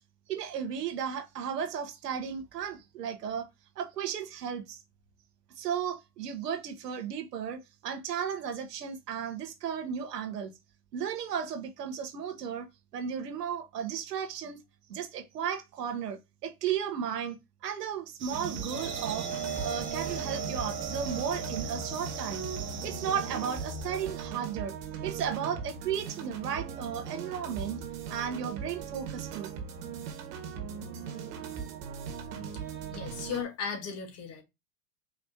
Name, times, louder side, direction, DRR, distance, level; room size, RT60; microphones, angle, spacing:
voice 1, 0.3-3.5 3.8-4.8 5.6-10.5 10.9-12.7 12.9-14.6 14.9-17.4 17.6-19.3 19.6-22.4 22.8-24.8 25.0-27.8 28.1-29.5, right 8 dB, 85° right, 1.1 m, -34 dB
sound 1, 18.2-24.0, right 7 dB, 25° right, 0.7 m, -42 dB
sound 2, 18.3-33.4, right 7 dB, 55° right, 1.6 m, -39 dB
sound 3, 18.7-24.3, right 3 dB, 15° left, 1.7 m, -39 dB
voice 2, 32.9-34.4, left 6 dB, 30° left, 1.4 m, -36 dB
4.9 x 3.1 x 2.7 m
hypercardioid pair, 110°, 47 cm